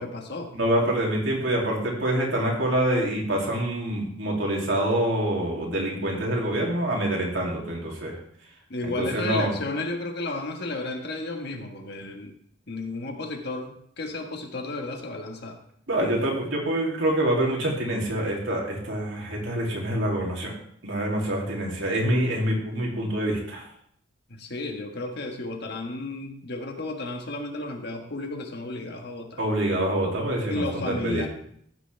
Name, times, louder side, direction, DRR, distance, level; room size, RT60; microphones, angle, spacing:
voice 1, 0.0-0.5 8.7-12.3 12.7-15.6 24.3-29.4 30.5-31.3, left 2 dB, 60° left, 3 dB, 1.4 m, -33 dB
voice 2, 0.5-8.2 9.0-9.6 15.9-20.5 20.8-23.6 29.4-31.3, right 1 dB, 75° right, -2 dB, 2.7 m, -26 dB
15.0 x 6.1 x 3.4 m, 0.66 s
head